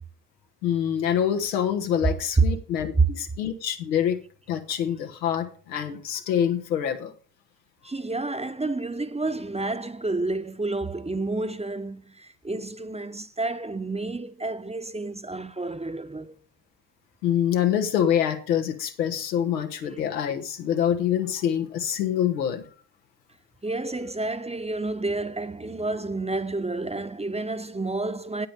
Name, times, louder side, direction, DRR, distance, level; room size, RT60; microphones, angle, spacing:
voice 1, 0.6-4.2 4.5-7.1 17.2-22.6, left 9 dB, 90° left, 1.1 m, -25 dB
voice 2, 7.8-16.3 19.4-19.6 23.6-28.5, right 3 dB, 15° right, 0.9 m, -30 dB
9.1 x 8.6 x 5.2 m
hypercardioid pair, 40°, 48 cm